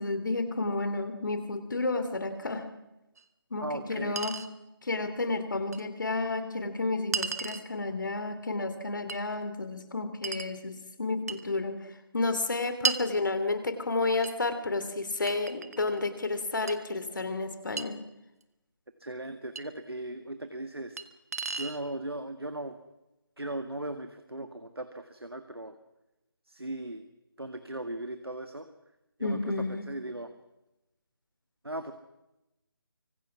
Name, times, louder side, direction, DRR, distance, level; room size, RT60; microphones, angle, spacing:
voice 1, 0.0-2.7 3.5-4.4 4.8-18.0 29.2-29.8, left 3 dB, 55° left, 10 dB, 3.1 m, -31 dB
Chink clink, 3.2-3.3 4.2-4.5 5.7-5.8 7.1-7.7 9.1-9.2 10.2-10.5 11.3-11.5 12.8-13.1 14.2-14.4 15.3-16.0 16.7-16.8 17.8-17.9 19.6-19.7 21.0-21.1 21.3-21.8, right 5 dB, 40° right, 1.3 m, -33 dB
voice 2, 3.6-4.2 19.0-21.0 21.6-22.8 23.4-25.8 26.5-27.0 27.4-28.7 29.2-30.3 31.6-31.9, right 1 dB, 80° right, 8 dB, 1.9 m, -38 dB
25.0 x 24.0 x 6.2 m, 0.96 s
figure-of-eight pair, 155°, 13 cm